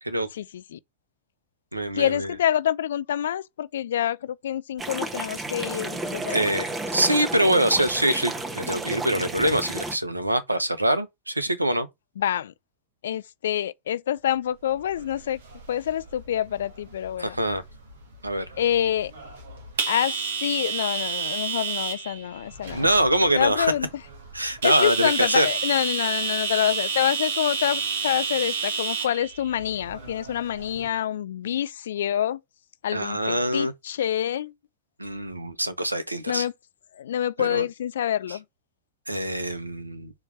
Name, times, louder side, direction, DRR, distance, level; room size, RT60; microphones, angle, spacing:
voice 1, 0.3-0.8 1.9-6.5 6.9-7.0 12.2-12.5 13.0-15.4 15.7-17.4 18.6-19.1 19.9-22.9 23.4-23.9 24.6-32.4 32.8-34.5 36.3-36.5 36.9-38.4, left 10 dB, 60° left, 0.5 m, -27 dB
voice 2, 1.7-2.3 6.3-11.9 17.2-17.6 18.2-18.5 22.7-23.7 24.3-25.5 32.9-33.7 35.0-36.5 37.4-37.6 39.1-40.1, right 1 dB, 85° right, 1.0 m, -24 dB
sound 1, 4.8-10.0, right 2 dB, 15° right, 1.1 m, -32 dB
sound 2, 14.8-30.9, right 5 dB, 60° right, 1.8 m, -31 dB
7.1 x 3.3 x 5.6 m
figure-of-eight pair, 90°, 0 cm